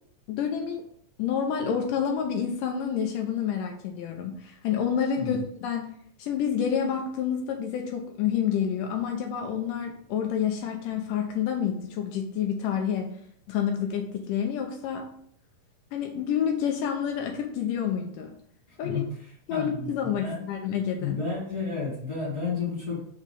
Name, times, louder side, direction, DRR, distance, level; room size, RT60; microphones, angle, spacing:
voice 1, 0.3-0.8 1.2-5.9 6.2-13.1 13.5-15.1 15.9-18.3 18.8-19.0 19.5-21.2, left 8 dB, 75° left, 3 dB, 2.1 m, -28 dB
voice 2, 18.8-19.1 19.5-20.4 21.0-23.0, left 4 dB, 30° left, -6 dB, 1.2 m, -31 dB
5.5 x 3.6 x 5.2 m, 0.64 s
omnidirectional pair, 4.3 m